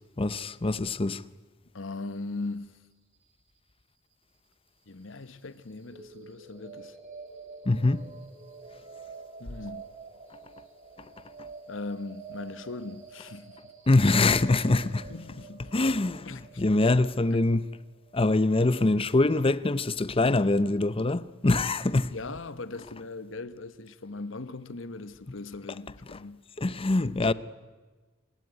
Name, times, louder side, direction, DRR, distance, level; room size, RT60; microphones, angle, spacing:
voice 1, 0.2-1.2 7.7-8.0 13.9-15.0 15.7-17.6 18.1-22.1 26.1-26.2 26.6-27.3, left 2 dB, 30° left, 0.7 m, -24 dB
voice 2, 1.7-2.8 4.9-7.0 9.4-9.9 11.7-13.6 15.1-15.7 16.2-16.9 17.3-17.4 22.1-26.4 27.0-27.3, left 3 dB, 70° left, 1.1 m, -39 dB
sound 1, 5.8-19.8, right 4 dB, 40° right, 3.2 m, -48 dB
27.0 x 16.0 x 9.7 m
head